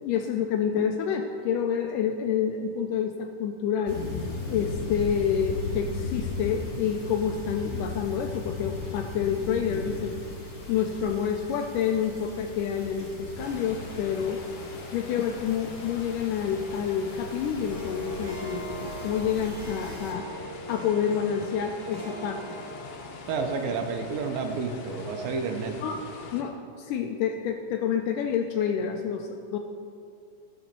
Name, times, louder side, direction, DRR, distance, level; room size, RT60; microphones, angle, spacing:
voice 1, 0.0-4.0 4.5-10.2 10.7-14.4 14.9-20.3 20.7-22.6 25.8-26.0 26.3-29.6, left 7 dB, 80° left, 4 dB, 2.0 m, -28 dB
sound 1, 3.9-20.1, left 3 dB, 40° left, 3.5 m, -37 dB
sound 2, 13.4-26.4, left 4 dB, 65° left, 2.4 m, -43 dB
Harp, 17.7-25.2, equal, 40° right, 2.4 m, -42 dB
voice 2, 23.3-25.8, right 4 dB, 75° right, 5 dB, 2.5 m, -30 dB
14.5 x 6.3 x 6.7 m, 2.4 s
omnidirectional pair, 4.2 m